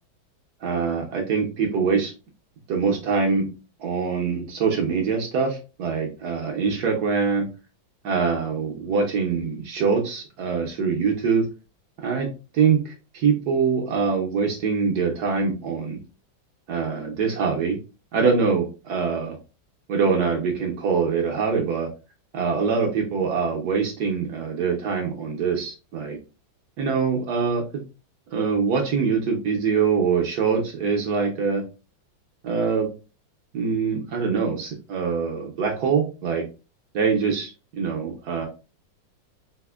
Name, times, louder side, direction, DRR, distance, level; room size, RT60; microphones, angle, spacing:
voice 1, 0.6-2.1 2.7-3.5 3.8-7.5 8.0-11.4 12.0-12.3 12.5-16.0 16.7-17.8 18.1-19.4 19.9-21.9 22.3-26.2 26.8-27.6 28.3-31.6 32.4-32.9 33.5-36.4 36.9-38.5, right 5 dB, 65° right, 2 dB, 1.1 m, -24 dB
4.2 x 2.5 x 2.3 m, 0.32 s
omnidirectional pair, 2.1 m